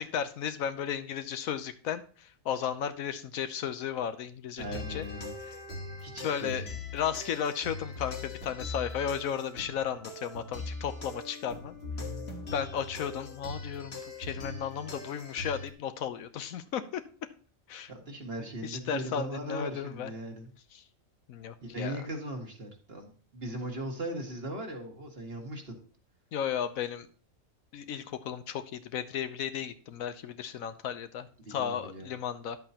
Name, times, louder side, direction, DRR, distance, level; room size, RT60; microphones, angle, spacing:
voice 1, 0.0-4.6 4.9-5.0 6.2-6.6 6.9-11.7 12.5-17.0 17.7-17.9 18.6-20.1 20.7-20.8 21.3-22.0 26.3-27.1 27.7-32.6, left 8 dB, 90° left, 11 dB, 1.2 m, -34 dB
sound 1, 4.6-15.7, left 3 dB, 50° left, 1.7 m, -41 dB
voice 2, 4.6-5.3 6.0-6.7 17.9-20.5 21.6-25.8 31.5-32.1, right 1 dB, 45° right, 2 dB, 2.0 m, -39 dB
11.0 x 7.8 x 2.9 m, 0.41 s
omnidirectional pair, 1.4 m